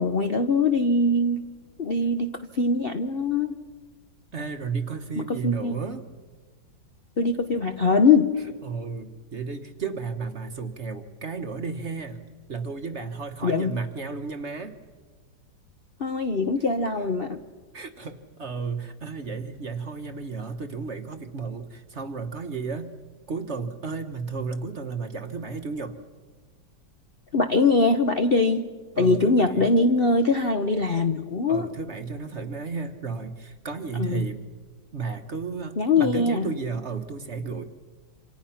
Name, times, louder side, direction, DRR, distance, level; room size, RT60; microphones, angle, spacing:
voice 1, 0.0-1.4 1.8-3.6 5.3-5.8 7.2-8.3 13.4-13.7 16.0-17.4 27.3-28.7 29.0-31.7 33.9-34.2 35.8-36.5, left 3 dB, 45° left, 7 dB, 0.8 m, -22 dB
voice 2, 4.3-6.0 8.6-12.2 12.5-14.8 17.7-22.9 23.3-26.0 29.0-29.9 31.5-34.5 34.9-37.6, right 4 dB, 40° right, 7 dB, 1.3 m, -33 dB
28.0 x 26.5 x 5.8 m, 1.4 s
omnidirectional pair, 2.1 m